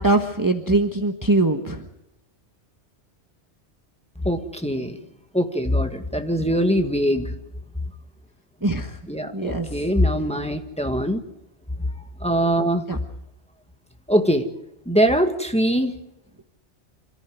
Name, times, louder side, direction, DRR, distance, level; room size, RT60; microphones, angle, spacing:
voice 1, 0.0-1.8 8.6-9.0 9.3-9.7 12.9-13.0, right 2 dB, 15° right, 5 dB, 1.3 m, -22 dB
voice 2, 4.2-5.0 5.3-7.3 9.1-11.2 11.8-11.9 12.2-12.8 14.1-14.5 14.9-15.9, equal, 5° left, 5 dB, 1.8 m, -22 dB
27.0 x 14.5 x 9.5 m, 0.83 s
omnidirectional pair, 1.2 m